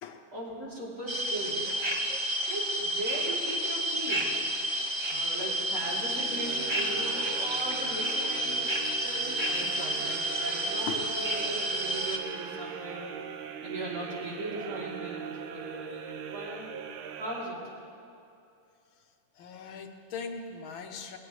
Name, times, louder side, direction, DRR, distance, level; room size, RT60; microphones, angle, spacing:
voice 1, 0.3-1.8 2.5-4.4 5.1-13.2 13.6-16.7 17.2-17.6, right 1 dB, 45° right, -6 dB, 3.7 m, -38 dB
sound 1, 1.1-12.2, right 1 dB, 25° right, 0.5 m, -30 dB
sound 2, 5.8-18.1, right 7 dB, 85° right, 1.6 m, -40 dB
voice 2, 19.4-21.2, left 5 dB, 80° left, 4 dB, 1.8 m, -39 dB
20.0 x 16.5 x 3.2 m, 2.6 s
omnidirectional pair, 2.2 m